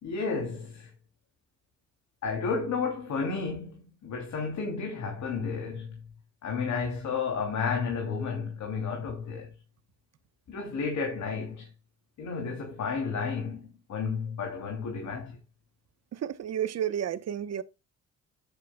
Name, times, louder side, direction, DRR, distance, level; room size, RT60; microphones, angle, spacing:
voice 1, 0.0-0.9 2.2-6.0 6.4-9.5 10.5-11.7 12.2-15.4, left 5 dB, 65° left, 2.9 m, -32 dB
voice 2, 16.1-17.6, right 10 dB, 60° right, 1.0 m, -31 dB
12.0 x 8.4 x 2.3 m
cardioid pair, 90°, 30 cm